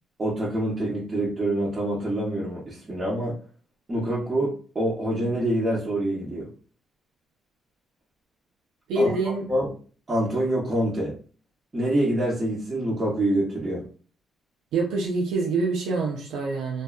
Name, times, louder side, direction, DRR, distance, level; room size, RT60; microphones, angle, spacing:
voice 1, 0.2-3.4 3.9-6.5 9.0-9.1 9.5-9.7 10.1-11.1 11.7-13.8, right 1 dB, 30° right, -6 dB, 0.8 m, -26 dB
voice 2, 8.9-9.5 14.7-16.8, right 3 dB, 85° right, -1 dB, 0.4 m, -25 dB
2.6 x 2.2 x 2.2 m, 0.40 s
cardioid pair, 90°, 0 cm